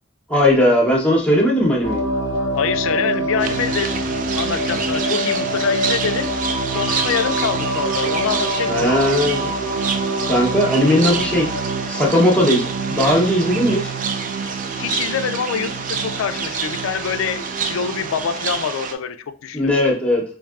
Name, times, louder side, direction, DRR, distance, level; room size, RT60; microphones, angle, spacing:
voice 1, 0.3-2.0 8.7-9.5 10.3-11.5 11.9-13.9 19.5-20.2, left 1 dB, 5° left, 0.7 m, -17 dB
sound 1, 1.8-18.6, right 1 dB, 60° right, 0.7 m, -26 dB
voice 2, 2.6-6.3 6.7-9.1 14.5-19.7, left 7 dB, 75° left, 0.3 m, -26 dB
sound 2, 3.4-18.9, right 5 dB, 40° right, 0.3 m, -28 dB
4.5 x 2.6 x 2.4 m
head